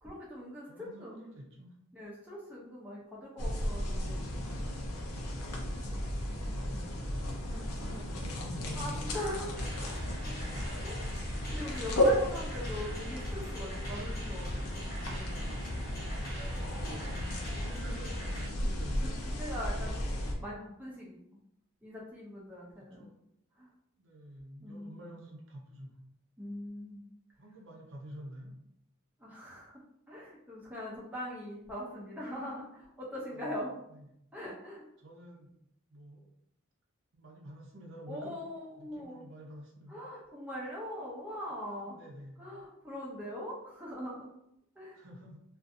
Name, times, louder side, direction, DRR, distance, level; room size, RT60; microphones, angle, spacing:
voice 1, 0.0-1.2 1.9-4.3 5.8-6.1 8.8-10.1 10.6-11.0 11.5-15.5 19.0-19.1 19.4-20.1 20.4-21.2 21.8-23.1 23.6-23.7 24.6-25.0 26.4-27.0 29.2-33.8 34.3-34.8 38.1-39.2 39.9-42.0 42.4-44.3 44.8-45.0, left 1 dB, 5° right, -5 dB, 0.4 m, -42 dB
voice 2, 0.7-1.8 6.2-9.0 10.2-10.9 16.3-19.4 23.0-23.1 24.0-26.0 27.4-28.5 33.3-33.6 33.9-34.1 35.0-35.5 35.9-36.3 37.1-38.4 38.8-40.0 41.8-42.4 44.9-45.4, right 1 dB, 55° right, -1 dB, 0.6 m, -49 dB
sound 1, 3.4-20.3, equal, 80° left, 0.6 m, -34 dB
sound 2, 9.5-18.5, equal, 45° left, 0.9 m, -43 dB
2.5 x 2.4 x 2.5 m, 0.78 s
head